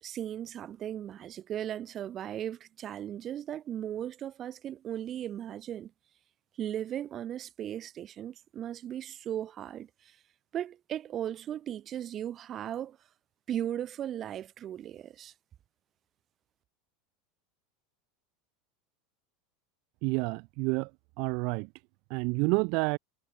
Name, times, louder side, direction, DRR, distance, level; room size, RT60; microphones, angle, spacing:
voice 1, 0.0-5.9 6.6-10.2 10.5-13.0 13.5-15.3, right 10 dB, 35° right, 2.5 m, -37 dB
voice 2, 20.0-20.9 21.2-21.7 22.1-23.0, right 32 dB, 60° right, 0.4 m, -29 dB
supercardioid pair, 120°, 0 cm